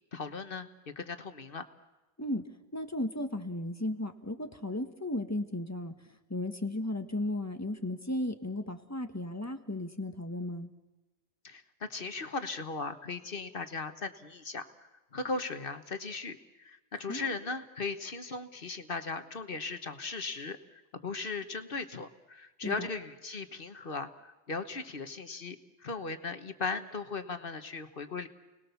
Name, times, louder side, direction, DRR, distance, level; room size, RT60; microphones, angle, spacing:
voice 1, 0.1-0.7 1.0-1.6 11.4-14.7 15.1-28.3, left 4 dB, 55° left, 9 dB, 1.4 m, -38 dB
voice 2, 2.7-5.9 6.3-10.7 17.1-17.3 22.6-22.9, left 1 dB, 15° left, 6 dB, 1.5 m, -35 dB
30.0 x 20.0 x 7.0 m, 1.1 s
omnidirectional pair, 1.1 m